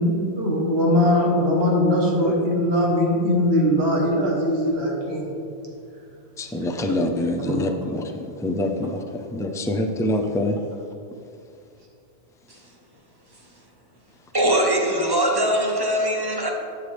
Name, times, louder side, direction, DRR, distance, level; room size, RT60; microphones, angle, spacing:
voice 1, 0.0-5.3 7.5-7.6, left 1 dB, 70° right, 1.6 m, -21 dB
voice 2, 6.4-8.0 8.4-9.0 9.3-10.5, left 1 dB, 5° left, 0.3 m, -25 dB
voice 3, 14.3-16.5, right 1 dB, 25° right, 1.0 m, -21 dB
11.0 x 6.5 x 3.5 m
omnidirectional pair, 1.1 m